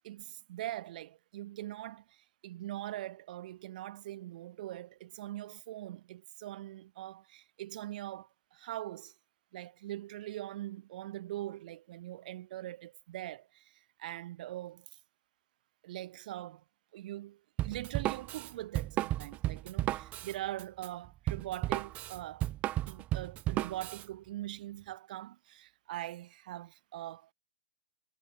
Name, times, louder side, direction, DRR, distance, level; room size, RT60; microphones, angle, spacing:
voice 1, 0.0-9.1 9.5-15.0 15.8-16.6 16.9-22.5 22.8-27.3, right 14 dB, 55° right, 1.1 m, -42 dB
Drum kit, 17.6-24.0, right 15 dB, 25° right, 0.5 m, -34 dB
hypercardioid pair, 135°, 5 cm